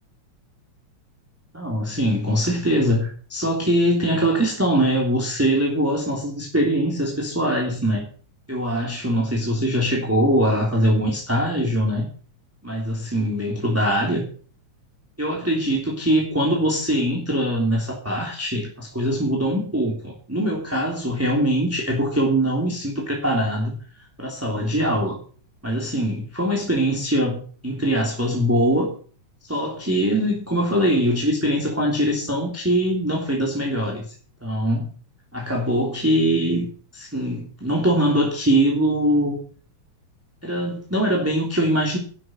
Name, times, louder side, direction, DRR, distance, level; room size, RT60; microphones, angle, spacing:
voice 1, 1.5-8.0 8.5-12.0 12.6-14.2 15.2-23.8 24.2-25.2 25.6-28.9 29.5-34.1 34.4-34.9 35.3-39.4 40.4-42.0, equal, 5° right, -2 dB, 3.0 m, -22 dB
12.0 x 7.9 x 8.9 m, 0.42 s
omnidirectional pair, 3.4 m